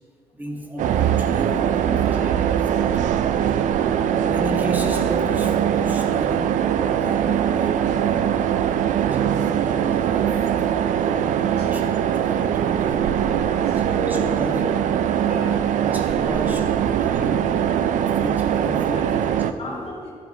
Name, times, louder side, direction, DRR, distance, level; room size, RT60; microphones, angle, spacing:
voice 1, 0.3-3.1 4.1-13.1 13.7-14.9 15.5-17.6 17.9-19.9, right 1 dB, 15° right, 1 dB, 1.8 m, -33 dB
sound 1, 0.8-19.5, right 9 dB, 80° right, 0.4 m, -21 dB
voice 2, 11.4-11.7 12.9-14.0 14.5-14.6 15.2-15.5 16.2-16.5 16.8-16.9 18.6-19.3 19.6-20.1, left 2 dB, 50° left, -4 dB, 2.1 m, -40 dB
12.0 x 7.9 x 4.2 m, 2.2 s
cardioid pair, 85°, 13 cm